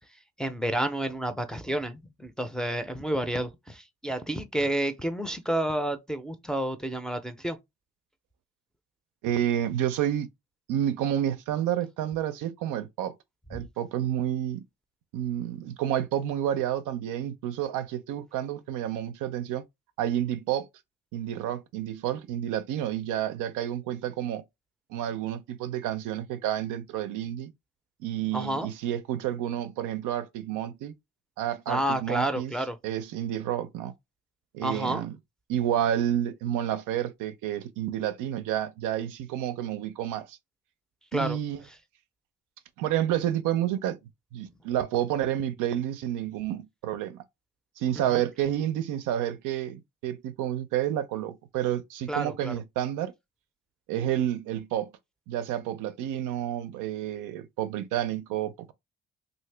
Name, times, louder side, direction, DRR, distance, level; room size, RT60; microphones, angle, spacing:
voice 1, 0.1-7.6 28.3-28.7 31.7-32.8 34.6-35.0 41.1-41.8 47.9-48.2 52.1-52.5, right 1 dB, ahead, 0.4 m, -30 dB
voice 2, 9.2-10.3 10.7-13.1 13.5-14.6 15.1-19.6 20.0-20.7 21.1-24.4 24.9-27.5 28.0-30.9 31.4-32.5 32.8-33.9 34.5-35.1 35.5-40.4 41.1-41.6 42.8-44.0 44.3-47.2 47.8-53.1 53.9-54.9 55.3-58.7, right 11 dB, 90° right, 0.5 m, -30 dB
2.8 x 2.6 x 3.2 m
cardioid pair, 90°, 30 cm